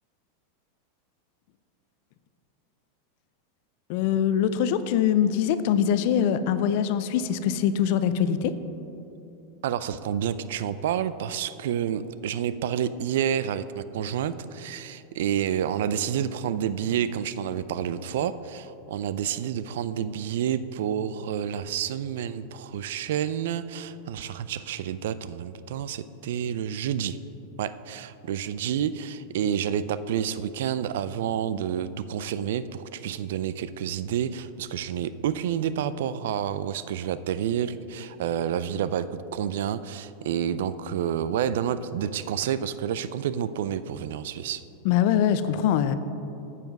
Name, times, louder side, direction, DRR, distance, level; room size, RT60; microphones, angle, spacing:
voice 1, 3.9-8.5 44.8-45.9, left 9 dB, 60° left, 12 dB, 0.5 m, -23 dB
voice 2, 9.6-27.2 27.6-44.6, right 9 dB, 75° right, 15 dB, 0.3 m, -29 dB
9.2 x 5.8 x 5.3 m, 2.9 s
hypercardioid pair, 110°, 0 cm